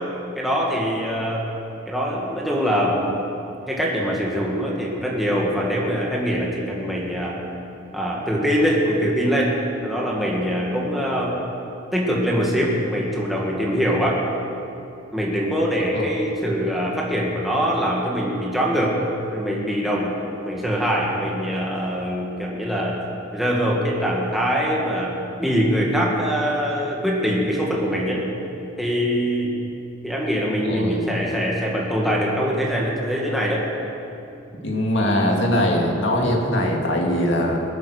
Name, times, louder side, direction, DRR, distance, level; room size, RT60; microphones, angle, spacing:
voice 1, 0.4-1.5 1.9-3.2 3.7-7.4 7.9-9.6 9.8-11.4 11.9-14.2 15.1-19.0 19.3-23.0 23.3-28.2 28.8-29.6 30.0-33.6, equal, ahead, -4 dB, 1.9 m, -23 dB
voice 2, 30.6-31.1 34.6-37.6, left 1 dB, 65° left, 0 dB, 2.5 m, -21 dB
21.5 x 9.3 x 6.5 m, 2.7 s
head